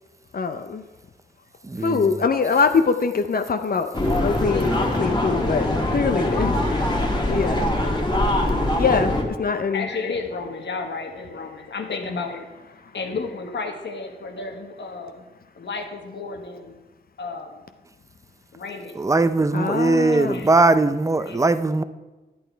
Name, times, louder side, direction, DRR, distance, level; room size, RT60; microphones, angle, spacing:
voice 1, 0.3-0.8 1.8-3.9 4.2-7.0 7.3-7.8 8.8-9.8 19.5-20.4, left 5 dB, 55° left, 0.6 m, -23 dB
voice 2, 1.7-2.1 19.0-21.8, right 2 dB, 15° right, 0.5 m, -20 dB
sound 1, 3.9-9.2, left 1 dB, 25° left, 1.7 m, -22 dB
voice 3, 9.7-12.5 12.9-15.2 15.5-16.8 17.2-17.6 18.5-19.0 20.1-20.9 21.2-21.5, left 4 dB, 90° left, 1.3 m, -32 dB
11.0 x 8.6 x 4.5 m
wide cardioid pair, 105°, 18 cm